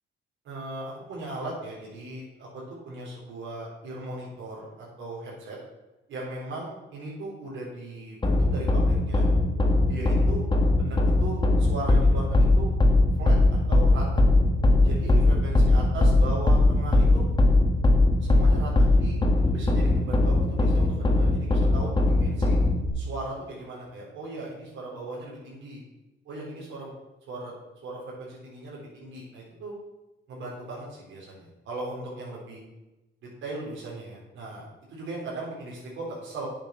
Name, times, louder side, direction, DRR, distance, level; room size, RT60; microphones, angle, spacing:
voice 1, 0.4-5.6 6.1-9.3 9.9-10.4 10.8-12.7 13.2-14.2 14.8-17.3 18.2-19.2 19.4-22.6 22.9-25.8 26.2-26.9 27.3-27.5 27.8-29.7 30.3-32.6 33.2-36.5, right 2 dB, 80° right, -5 dB, 3.8 m, -38 dB
sound 1, 8.2-22.9, left 2 dB, 25° left, 1.7 m, -21 dB
9.0 x 7.3 x 5.9 m, 1.0 s
cardioid pair, 90°, 20 cm